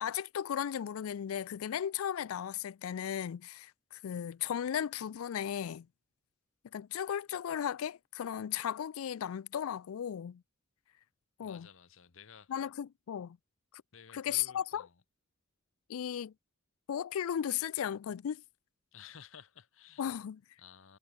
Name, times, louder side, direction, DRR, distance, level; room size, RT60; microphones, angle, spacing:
voice 1, 0.0-5.9 6.7-10.4 11.4-11.7 12.5-13.4 14.1-14.9 15.9-16.3 16.9-18.4 20.0-20.4, left 9 dB, 90° left, 0.4 m, -36 dB
voice 2, 11.4-12.7 13.9-15.0 18.9-20.2 20.6-21.0, left 7 dB, 70° left, 0.9 m, -55 dB
head